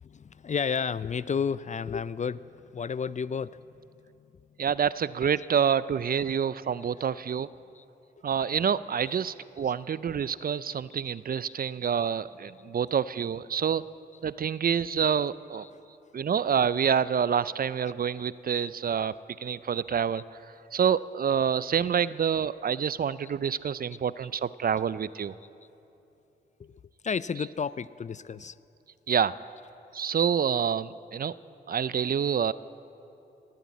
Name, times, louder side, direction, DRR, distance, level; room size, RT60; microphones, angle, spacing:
voice 1, 0.0-3.7 7.8-7.9 9.0-9.1 10.7-10.8 11.5-11.6 15.6-15.8 19.0-19.1 19.9-20.0 26.6-28.6, left 6 dB, 40° left, 18 dB, 0.4 m, -32 dB
voice 2, 4.6-7.5 8.2-13.9 14.2-15.7 16.1-19.1 19.4-20.2 20.7-25.3 29.1-29.3 29.9-31.3 31.7-32.5, right 7 dB, 50° right, 18 dB, 0.4 m, -27 dB
17.5 x 9.1 x 8.4 m, 2.8 s
cardioid pair, 45°, 20 cm